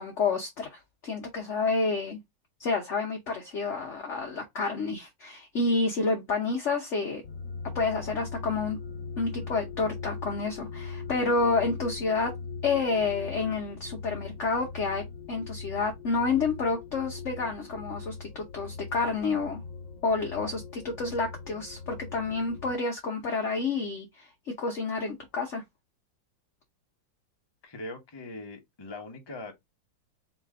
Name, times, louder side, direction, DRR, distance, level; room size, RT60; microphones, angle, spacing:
voice 1, 0.0-2.2 2.6-7.2 7.7-8.8 9.2-12.3 12.6-15.0 15.3-19.6 20.0-24.3 24.6-25.6, left 4 dB, 50° left, 1.0 m, -29 dB
sound 1, 7.2-22.7, left 5 dB, 70° left, 1.5 m, -40 dB
voice 2, 27.6-29.6, left 2 dB, 25° left, 0.6 m, -41 dB
4.1 x 3.1 x 3.5 m
omnidirectional pair, 2.1 m